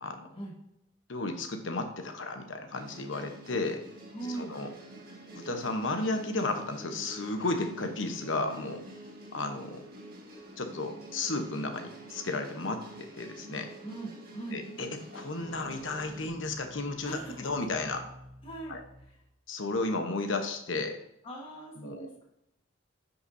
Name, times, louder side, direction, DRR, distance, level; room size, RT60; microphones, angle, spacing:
voice 1, 0.0-0.3 1.1-3.8 4.3-4.7 5.3-8.8 9.3-9.8 10.6-13.7 14.5-18.0 18.7-18.8 19.5-21.0 21.8-22.1, left 2 dB, 75° left, 6 dB, 1.0 m, -33 dB
sound 1, 2.7-16.3, right 1 dB, 50° right, 1.9 m, -47 dB
voice 2, 4.1-4.5 13.8-14.6 17.0-17.5 18.4-18.8 19.0-19.2 21.2-22.2, right 2 dB, 25° left, -2 dB, 1.5 m, -40 dB
sound 2, 15.4-19.3, equal, 5° left, 2.7 m, -51 dB
9.7 x 5.8 x 2.7 m, 0.83 s
head